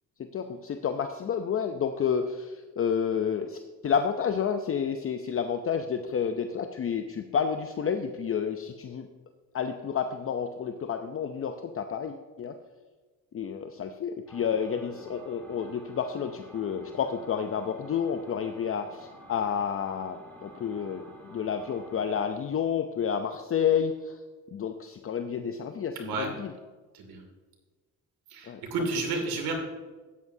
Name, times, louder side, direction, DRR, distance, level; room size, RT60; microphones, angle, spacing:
voice 1, 0.2-9.1 9.5-12.6 13.3-21.0 21.3-24.2 24.5-26.5 28.5-28.6, left 7 dB, 40° left, 7 dB, 0.6 m, -30 dB
sound 1, 14.3-22.3, equal, 5° left, 3.3 m, -50 dB
voice 2, 26.0-26.3 26.9-27.2 28.3-29.5, right 3 dB, 85° right, 2 dB, 2.5 m, -31 dB
12.5 x 9.4 x 2.7 m, 1.3 s
cardioid pair, 90°, 36 cm